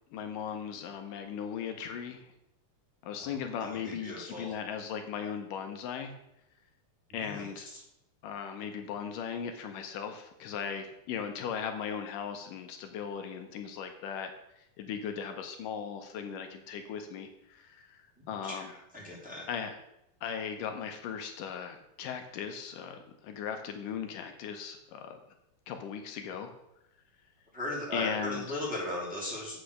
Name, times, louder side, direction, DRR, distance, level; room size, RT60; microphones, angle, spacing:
voice 1, 0.1-2.3 3.0-6.1 7.1-7.7 8.2-18.7 19.5-19.8 20.2-25.2 25.7-26.5 27.9-28.5, left 7 dB, 80° left, 6 dB, 2.3 m, -38 dB
voice 2, 3.2-4.5 7.1-7.5 18.4-19.5 27.5-29.6, left 1 dB, 5° right, -5 dB, 2.2 m, -37 dB
8.3 x 5.8 x 6.5 m, 0.86 s
omnidirectional pair, 3.9 m